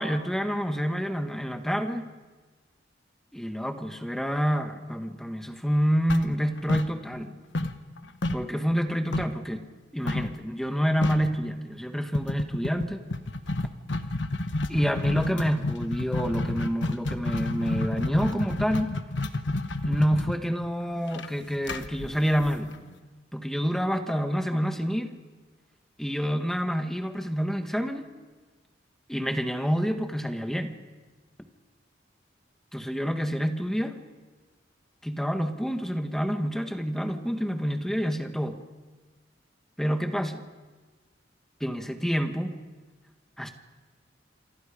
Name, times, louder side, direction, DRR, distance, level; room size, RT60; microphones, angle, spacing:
voice 1, 0.0-2.0 3.3-7.3 8.3-9.6 9.9-13.0 14.7-18.9 19.8-22.7 23.3-25.1 26.0-28.1 29.1-30.8 32.7-34.0 35.0-38.6 39.8-40.4 41.6-42.6 43.4-43.5, equal, ahead, 6 dB, 1.5 m, -28 dB
sound 1, 6.1-7.3 7.5-9.4 10.1-10.4 10.7-10.8 11.0-11.4 12.1-22.9, left 2 dB, 75° left, 1.2 m, -30 dB
27.0 x 25.5 x 5.2 m, 1.3 s
head